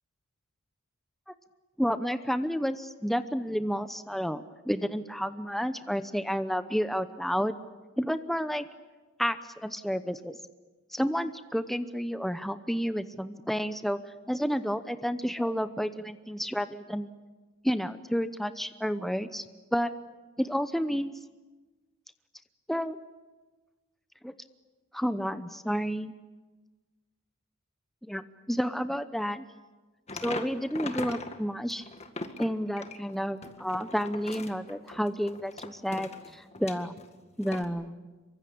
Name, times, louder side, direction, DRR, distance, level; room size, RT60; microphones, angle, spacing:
voice 1, 1.8-7.6 8.0-8.6 9.2-10.4 10.9-14.0 14.3-17.1 17.6-19.4 19.7-19.9 20.4-21.1 22.7-23.0 24.2-24.3 24.9-26.1 28.0-29.4 30.2-31.8 32.4-36.9 37.4-38.1, equal, ahead, 10 dB, 0.8 m, -30 dB
sound 1, 30.1-31.4 31.7-37.1 37.4-37.6, left 3 dB, 30° left, 1.9 m, -40 dB
27.0 x 23.5 x 8.6 m, 1.3 s
head